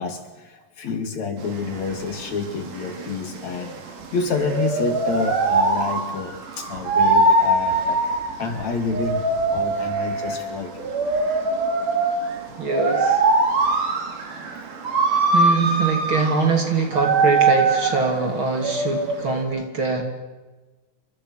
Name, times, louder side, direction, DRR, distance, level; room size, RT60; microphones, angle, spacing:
voice 1, 0.0-3.8 4.1-8.1 8.4-10.9, left 4 dB, 55° left, 6 dB, 3.5 m, -28 dB
sound 1, 1.4-19.4, right 3 dB, 65° right, 4.6 m, -22 dB
voice 2, 12.6-13.2 15.1-20.0, right 4 dB, 40° right, 4 dB, 3.5 m, -23 dB
29.0 x 25.0 x 6.4 m, 1.2 s
omnidirectional pair, 3.9 m